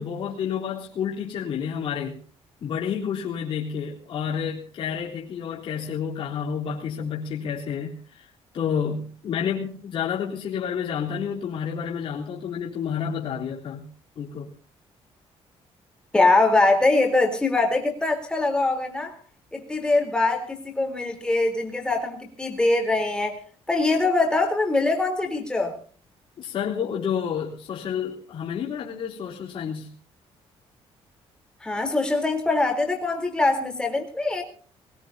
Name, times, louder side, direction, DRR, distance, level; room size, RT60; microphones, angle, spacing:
voice 1, 0.0-2.2 2.6-13.8 14.2-14.5 26.4-29.9, left 7 dB, 55° left, -4 dB, 3.7 m, -30 dB
voice 2, 16.1-19.2 19.5-23.4 23.7-25.7 31.6-34.4, left 2 dB, 10° left, 2 dB, 3.7 m, -23 dB
21.5 x 21.0 x 2.8 m, 0.44 s
cardioid pair, 180°, 11 cm